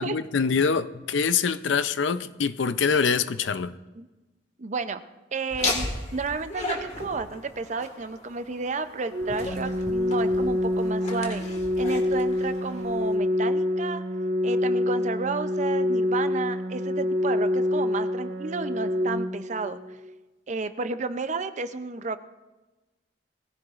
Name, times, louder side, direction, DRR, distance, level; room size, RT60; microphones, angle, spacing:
voice 1, 0.0-3.7, left 5 dB, 80° left, 13 dB, 0.5 m, -24 dB
voice 2, 4.6-5.0 5.3-11.4 11.8-14.0 14.4-20.0 20.5-22.2, right 4 dB, 40° right, 11 dB, 0.5 m, -32 dB
Laughter, 5.5-13.2, left 2 dB, 40° left, 1.7 m, -35 dB
Organ, 9.1-20.1, left 1 dB, 75° right, 1.5 m, -26 dB
20.0 x 14.5 x 2.5 m, 1.1 s
head